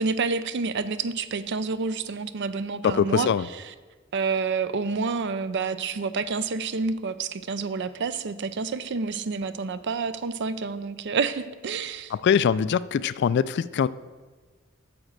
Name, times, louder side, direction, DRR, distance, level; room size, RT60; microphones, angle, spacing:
voice 1, 0.0-3.7 4.1-12.1, right 4 dB, 55° right, 14 dB, 0.5 m, -29 dB
voice 2, 2.8-3.4 12.2-13.9, left 7 dB, 55° left, 18 dB, 0.3 m, -22 dB
8.6 x 6.1 x 6.6 m, 1.4 s
head